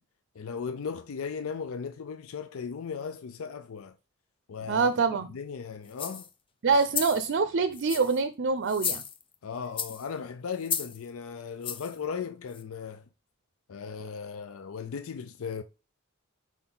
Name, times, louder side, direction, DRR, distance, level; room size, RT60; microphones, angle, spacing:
voice 1, 0.4-3.9 4.5-4.9 5.3-6.3 9.4-13.0 13.7-15.6, left 6 dB, 70° left, 0.5 m, -37 dB
voice 2, 4.7-5.3 6.6-9.0, right 4 dB, 55° right, 0.5 m, -25 dB
sound 1, 5.9-6.3 6.8-7.2 7.7-8.2 8.7-9.3 9.8-10.1 10.6-11.0 11.6-11.9 12.5-12.6, left 7 dB, 25° left, 0.7 m, -33 dB
6.0 x 4.6 x 3.8 m
head